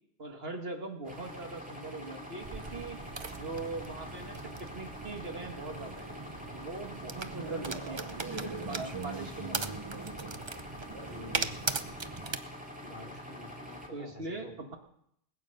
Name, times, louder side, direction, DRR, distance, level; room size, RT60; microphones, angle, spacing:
voice 1, 0.2-3.0 3.4-6.1 6.5-8.4 8.7-9.8 13.9-14.8, right 3 dB, 55° right, 4 dB, 2.0 m, -41 dB
sound 1, 1.0-13.9, left 1 dB, 5° right, 2.2 m, -45 dB
sound 2, 2.4-12.4, right 4 dB, 30° right, 0.6 m, -39 dB
voice 2, 11.1-11.8 12.8-14.5, left 3 dB, 40° left, 4 dB, 1.6 m, -48 dB
20.5 x 8.9 x 6.7 m, 0.73 s
omnidirectional pair, 1.2 m